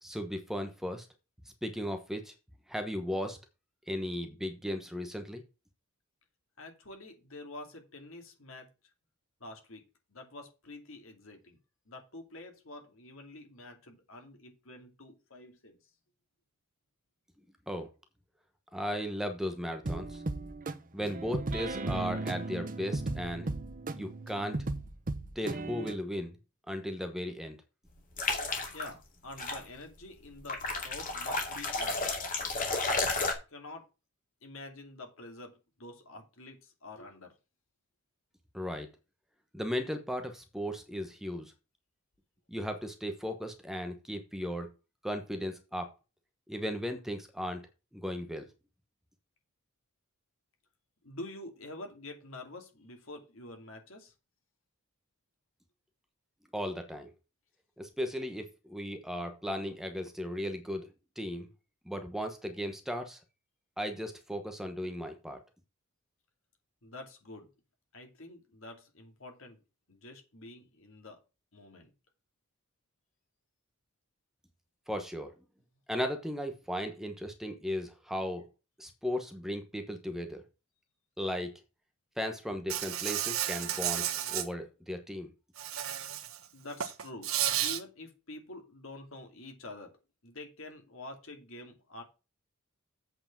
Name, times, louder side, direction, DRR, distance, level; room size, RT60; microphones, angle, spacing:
voice 1, 0.0-1.1 1.6-2.3 2.7-3.4 3.9-5.4 17.7-17.9 18.7-20.2 20.9-23.5 24.0-24.6 25.3-26.3 26.7-27.6 38.5-38.9 39.5-41.5 42.5-44.7 45.0-45.9 46.5-47.7 47.9-48.4 56.5-57.1 57.8-60.9 61.2-61.5 61.9-63.2 63.8-65.4 74.9-75.3 75.9-78.4 78.8-80.4 81.2-81.5 82.2-85.3, equal, ahead, 6 dB, 1.0 m, -36 dB
voice 2, 6.6-8.7 9.4-9.8 10.1-11.6 11.9-15.8 28.7-32.2 32.9-33.1 33.5-33.8 34.4-37.3 51.0-54.1 66.8-67.5 67.9-69.6 69.9-71.2 71.5-71.9 86.5-87.3 87.6-89.9 90.2-92.0, left 2 dB, 65° left, 4 dB, 2.5 m, -47 dB
sound 1, 19.8-26.0, right 2 dB, 40° right, 0.8 m, -36 dB
sound 2, 28.2-28.9 29.4-29.6 30.5-33.3, left 3 dB, 40° left, 2.3 m, -32 dB
Insect, 82.7-84.5 85.6-86.4 86.7-87.8, right 11 dB, 70° right, 1.1 m, -32 dB
8.1 x 4.8 x 7.3 m, 0.29 s
head